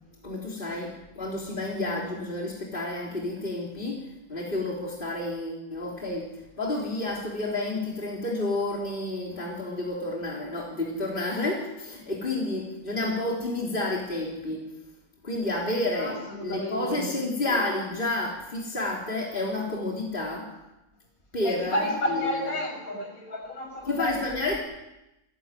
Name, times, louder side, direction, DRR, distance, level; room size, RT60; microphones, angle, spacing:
voice 1, 0.2-6.3 6.6-14.6 15.2-20.5 21.3-22.3 23.9-24.6, left 2 dB, 35° left, -3 dB, 4.2 m, -30 dB
voice 2, 15.9-17.1 21.4-24.1 24.5-24.6, left 1 dB, 65° left, 0 dB, 7.4 m, -31 dB
28.5 x 12.0 x 9.3 m, 0.93 s
omnidirectional pair, 1.6 m